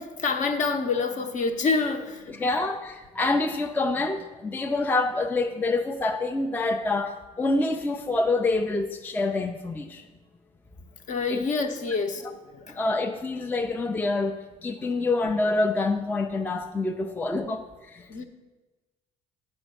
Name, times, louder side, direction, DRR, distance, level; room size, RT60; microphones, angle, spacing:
voice 1, 0.0-2.4 11.1-12.3 12.5-12.8 17.0-17.1 18.1-18.3, left 4 dB, 45° left, 7 dB, 0.8 m, -27 dB
voice 2, 2.3-10.1 11.3-11.4 12.7-18.0, left 2 dB, 10° left, 6 dB, 0.4 m, -27 dB
7.7 x 4.4 x 6.3 m, 1.2 s
cardioid pair, 110°, 17 cm